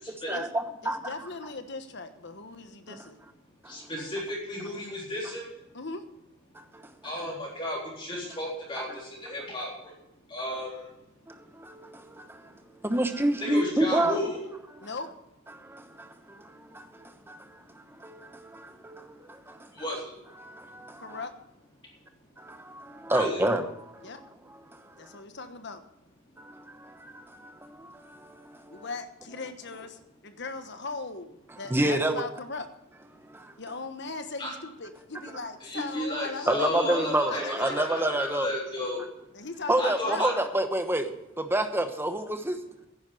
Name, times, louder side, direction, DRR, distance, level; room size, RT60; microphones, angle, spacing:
voice 1, 0.3-1.1 2.9-3.0 3.6-3.9 6.5-6.8 11.3-12.5 12.8-14.2 15.5-19.7 20.4-21.2 22.4-24.1 24.7-25.2 26.4-28.9 31.7-32.2 33.3-33.5 36.5-38.5 39.7-42.6, right 1 dB, 10° right, 7 dB, 1.1 m, -30 dB
voice 2, 0.8-3.2 5.7-6.0 14.8-15.1 21.0-21.3 24.0-24.2 25.0-25.8 28.7-32.7 33.6-38.1 39.3-40.2, left 3 dB, 55° left, 9 dB, 1.2 m, -39 dB
voice 3, 3.7-5.5 7.0-9.7 10.3-10.8 13.4-14.4 19.8-20.0 23.1-23.4 34.4-34.5 35.6-39.0 39.8-40.3, left 1 dB, 25° left, -4 dB, 3.7 m, -33 dB
10.5 x 10.0 x 7.8 m, 0.86 s
head